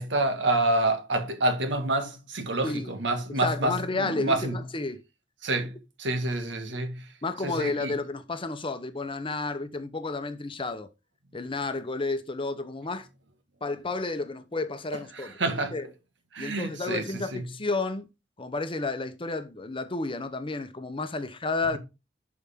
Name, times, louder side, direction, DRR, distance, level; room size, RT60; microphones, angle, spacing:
voice 1, 0.0-4.6 5.4-7.1 7.4-8.0 15.1-15.8 16.3-17.4 21.7-21.8, right 2 dB, 75° right, 1.7 m, -28 dB
voice 2, 3.4-5.0 7.2-10.9 11.3-13.1 13.6-15.3 15.7-15.9 16.4-18.1 18.4-21.8, left 3 dB, 30° left, 0.8 m, -31 dB
11.0 x 4.8 x 3.7 m
head